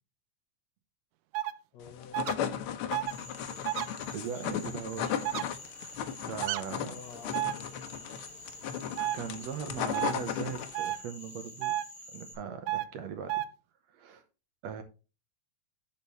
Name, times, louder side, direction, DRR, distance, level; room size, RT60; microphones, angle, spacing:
sound 1, 1.3-1.5 2.1-2.3 2.9-3.1 3.7-3.9 5.3-5.4 6.4-6.6 7.3-7.5 9.0-9.2 9.9-10.1 10.7-11.0 11.6-11.8 12.7-12.9 13.3-13.5, right 14 dB, 90° right, 2.1 m, -31 dB
voice 1, 1.7-2.3 3.2-3.7 4.2-4.7 6.8-7.7, left 6 dB, 70° left, 1.9 m, -50 dB
sound 2, 1.9-11.0, left 9 dB, 90° left, 1.2 m, -36 dB
Cricket / Frog, 3.0-12.3, left 2 dB, 10° right, 5.1 m, -48 dB
voice 2, 4.1-5.3 5.7-6.9 9.1-11.8 12.1-13.4 13.9-14.2 14.6-14.8, right 7 dB, 65° right, 2.0 m, -40 dB
10.5 x 5.6 x 3.1 m
omnidirectional pair, 3.5 m